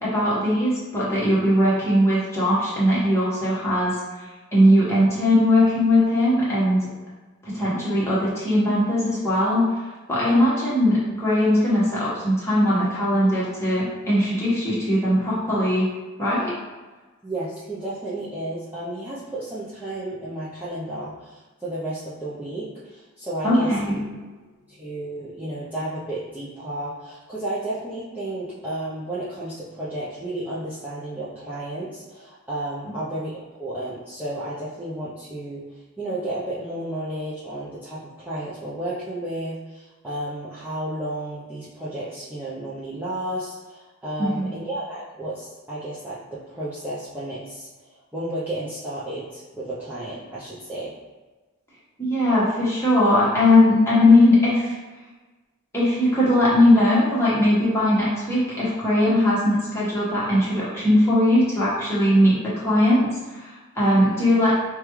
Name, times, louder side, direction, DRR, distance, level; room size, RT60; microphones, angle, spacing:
voice 1, 0.0-4.0 4.5-6.9 7.4-9.6 10.1-15.9 16.2-16.5 23.4-23.9 44.2-44.5 52.0-54.7 55.7-63.1 63.3-64.5, left 1 dB, 10° left, -9 dB, 1.2 m, -19 dB
voice 2, 17.2-23.7 24.7-35.6 36.0-50.9, right 1 dB, 10° right, -11 dB, 0.6 m, -32 dB
5.0 x 2.3 x 3.0 m, 1.2 s
head